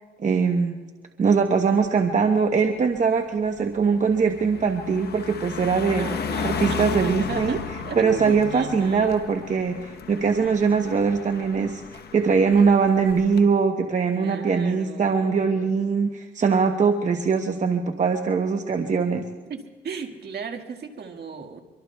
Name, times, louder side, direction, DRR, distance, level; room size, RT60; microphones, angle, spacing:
voice 1, 0.2-0.8 1.2-6.1 6.4-7.6 7.9-19.2, right 5 dB, 40° right, 5 dB, 0.9 m, -22 dB
Car passing by, 1.8-2.1 2.5-13.4, left 6 dB, 55° left, 1.0 m, -34 dB
voice 2, 6.0-9.2 14.1-15.7 19.5-21.6, right 5 dB, 55° right, 5 dB, 1.7 m, -36 dB
24.5 x 24.0 x 2.3 m, 1.4 s
cardioid pair, 90°, 20 cm